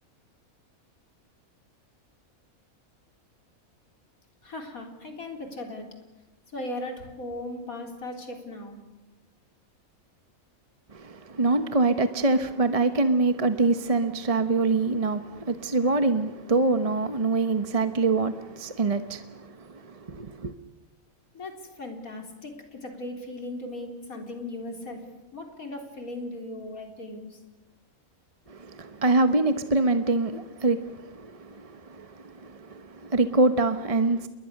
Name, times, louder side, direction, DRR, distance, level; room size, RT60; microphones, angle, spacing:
voice 1, 4.4-5.9 6.5-8.8 21.3-25.1 25.3-27.4, left 2 dB, 75° left, 4.4 m, -37 dB
voice 2, 10.9-20.5 28.5-34.3, right 3 dB, 30° right, 1.0 m, -25 dB
29.0 x 22.0 x 6.6 m
omnidirectional pair, 1.5 m